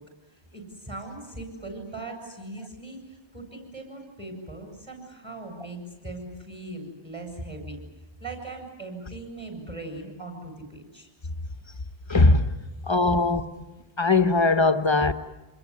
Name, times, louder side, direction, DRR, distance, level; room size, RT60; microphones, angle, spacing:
voice 1, 0.5-7.8 8.2-11.1, right 2 dB, 25° right, 7.8 m, -39 dB
voice 2, 12.1-12.5 12.9-13.4 14.0-15.1, left 3 dB, 25° left, 1.3 m, -20 dB
28.0 x 21.5 x 9.8 m
omnidirectional pair, 1.2 m